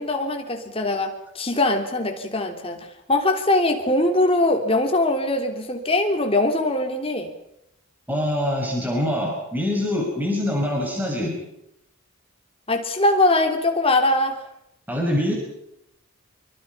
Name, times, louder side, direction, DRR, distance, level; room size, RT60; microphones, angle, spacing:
voice 1, 0.0-7.3 12.7-14.5, left 2 dB, 25° left, 3 dB, 3.4 m, -22 dB
voice 2, 8.1-11.3 14.9-15.3, left 1 dB, 10° right, -1 dB, 6.1 m, -24 dB
26.5 x 24.0 x 5.8 m, 0.79 s
head